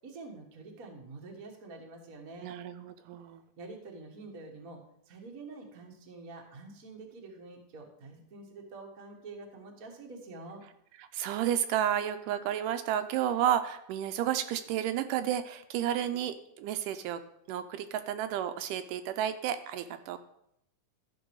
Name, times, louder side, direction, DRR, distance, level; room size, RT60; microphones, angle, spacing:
voice 1, 0.0-2.6 3.6-4.8 5.0-10.6, right 3 dB, 50° right, 1 dB, 1.0 m, -47 dB
voice 2, 2.4-3.4 11.0-17.2 17.5-20.2, right 10 dB, 85° right, 9 dB, 2.1 m, -31 dB
13.0 x 5.2 x 4.7 m, 0.76 s
omnidirectional pair, 3.8 m